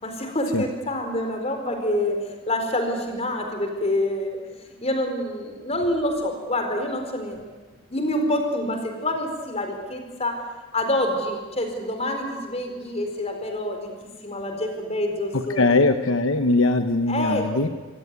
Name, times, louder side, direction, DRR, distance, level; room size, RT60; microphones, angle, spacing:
voice 1, 0.0-4.4 4.8-7.4 7.9-10.4 10.7-13.9 14.2-15.7 17.1-17.4, left 1 dB, 30° left, 4 dB, 4.4 m, -27 dB
voice 2, 15.3-17.7, left 2 dB, 75° left, 8 dB, 1.0 m, -21 dB
26.5 x 16.5 x 9.6 m, 1.3 s
head